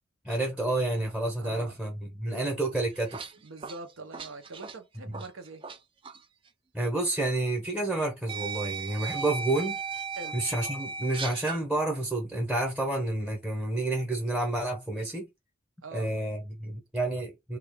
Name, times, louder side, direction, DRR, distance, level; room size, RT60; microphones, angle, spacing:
voice 1, 0.2-3.2 5.1-5.2 6.7-9.8 10.3-15.3 15.9-17.6, right 2 dB, 5° right, 0.8 m, -29 dB
voice 2, 1.4-1.8 3.4-5.6 10.2-10.4 15.8-16.1, right 3 dB, 85° right, 0.8 m, -43 dB
sound 1, 2.8-5.8 6.0-6.2 7.3-7.4 8.3-11.6, right 5 dB, 25° right, 0.3 m, -37 dB
3.8 x 2.4 x 3.4 m
head